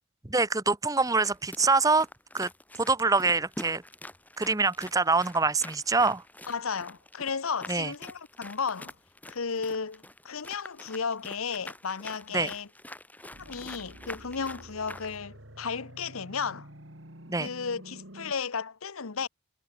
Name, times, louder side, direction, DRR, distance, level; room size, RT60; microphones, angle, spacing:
voice 1, 0.2-2.1 2.3-2.5 2.8-3.8 4.4-6.2 7.7-7.9 12.3-12.5 17.3-17.5, right 3 dB, 15° right, 0.8 m, -25 dB
sound 1, 1.2-15.2, left 1 dB, 10° left, 6.9 m, -46 dB
voice 2, 6.5-8.9 9.3-12.7 13.4-16.7 17.4-19.3, left 5 dB, 90° left, 1.0 m, -34 dB
sound 2, 13.3-18.3, right 1 dB, 65° right, 5.1 m, -49 dB
head